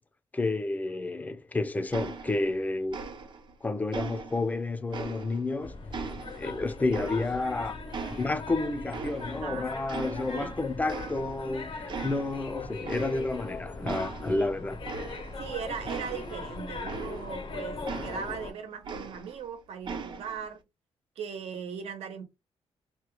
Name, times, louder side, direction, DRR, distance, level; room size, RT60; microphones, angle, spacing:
voice 1, 0.3-3.0 3.6-5.8 6.3-7.8 8.2-14.8, left 2 dB, 15° left, 0.5 m, -30 dB
sound 1, 1.9-2.6 2.9-3.5 3.9-5.5 5.9-7.6 7.9-9.5 9.9-10.6 10.9-11.5 11.9-12.5 12.8-13.5 13.8-17.5 17.9-19.5 19.8-20.5, right 4 dB, 50° right, 0.7 m, -40 dB
sound 2, 5.6-18.5, left 3 dB, 55° left, 0.7 m, -39 dB
voice 2, 9.4-9.7 10.3-10.5 14.2-14.5 15.4-20.6 21.2-22.2, right 7 dB, 80° right, 1.0 m, -38 dB
2.9 x 2.2 x 3.1 m
cardioid pair, 115°, 10 cm